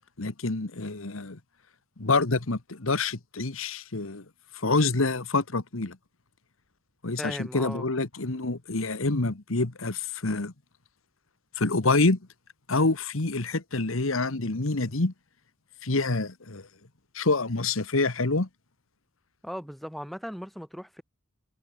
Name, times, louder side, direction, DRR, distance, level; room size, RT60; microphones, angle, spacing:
voice 1, 0.2-1.4 2.0-4.2 4.5-6.0 7.0-10.5 11.6-12.2 12.7-15.1 15.8-16.7 17.1-18.5, left 3 dB, 80° left, 1.5 m, -27 dB
voice 2, 7.2-7.9 19.4-21.0, equal, ahead, 7.8 m, -37 dB
head